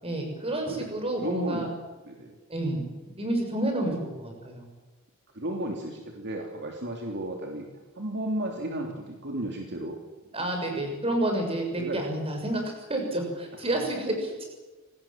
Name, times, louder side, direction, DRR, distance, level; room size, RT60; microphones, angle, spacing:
voice 1, 0.0-1.7 2.5-2.8 3.2-4.7 10.3-14.4, right 1 dB, 25° right, 3 dB, 6.7 m, -29 dB
voice 2, 1.2-1.7 2.0-2.4 3.8-4.0 5.3-7.7 7.9-10.0 10.4-10.5 11.8-12.1 13.7-13.9, right 1 dB, 50° right, 1 dB, 3.2 m, -34 dB
26.5 x 19.5 x 7.5 m, 1.2 s
head